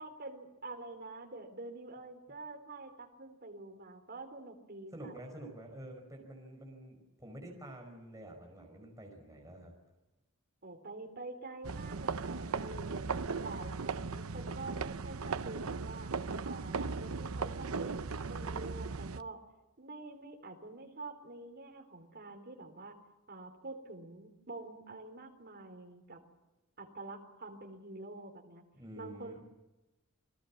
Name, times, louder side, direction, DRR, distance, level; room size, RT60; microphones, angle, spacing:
voice 1, 0.0-5.2 10.6-13.1 13.4-16.1 16.5-19.4 19.8-22.9 23.3-26.2 26.8-28.6 29.0-29.4, right 3 dB, 50° right, 5 dB, 3.8 m, -47 dB
voice 2, 4.9-9.7 28.7-29.4, right 1 dB, 15° right, 1 dB, 5.4 m, -48 dB
sound 1, 11.6-19.2, right 4 dB, 80° right, 0.8 m, -37 dB
29.0 x 20.0 x 7.3 m, 1.0 s
head